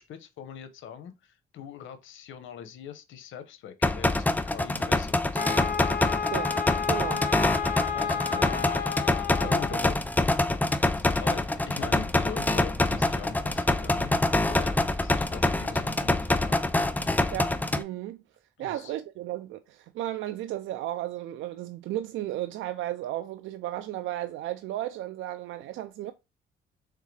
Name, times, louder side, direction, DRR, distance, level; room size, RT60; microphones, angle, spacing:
voice 1, 0.0-5.5 7.9-8.8 9.1-10.1 10.9-16.6 18.6-18.9, left 8 dB, 80° left, 0.8 m, -42 dB
sound 1, 3.8-17.8, left 2 dB, 10° left, 0.4 m, -25 dB
Wind instrument woodwind instrument, 5.4-9.9, left 7 dB, 55° left, 0.8 m, -31 dB
voice 2, 6.3-7.3 9.3-9.9 17.3-18.2 18.6-26.1, right 14 dB, 80° right, 0.4 m, -34 dB
sound 2, 9.8-17.8, equal, 15° right, 0.8 m, -43 dB
3.7 x 3.3 x 3.2 m
cardioid pair, 90°, 20 cm